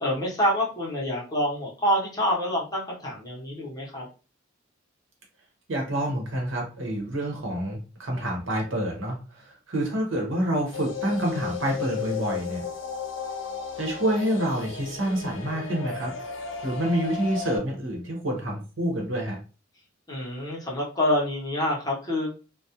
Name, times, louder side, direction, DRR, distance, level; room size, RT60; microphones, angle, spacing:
voice 1, 0.0-4.1 20.1-22.4, equal, 20° left, -4 dB, 0.8 m, -27 dB
voice 2, 5.7-12.7 13.8-16.2 16.4-19.4, right 1 dB, 70° right, 1 dB, 0.9 m, -28 dB
sound 1, 10.7-17.6, left 6 dB, 65° left, 0.6 m, -34 dB
2.3 x 2.1 x 2.8 m, 0.34 s
head